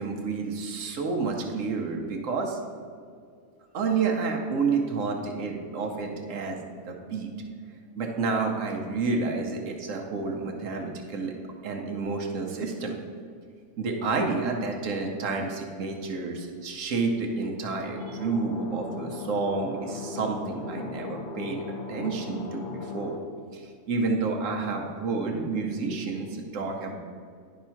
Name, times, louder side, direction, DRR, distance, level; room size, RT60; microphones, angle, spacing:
voice 1, 0.0-2.6 3.7-7.3 7.9-11.3 11.6-13.0 13.8-21.6 21.9-23.2 23.5-27.0, right 4 dB, 90° right, 2 dB, 1.3 m, -30 dB
sound 1, 18.0-23.2, left 5 dB, 45° left, 1.0 m, -38 dB
10.5 x 3.6 x 5.7 m, 2.2 s
omnidirectional pair, 1.3 m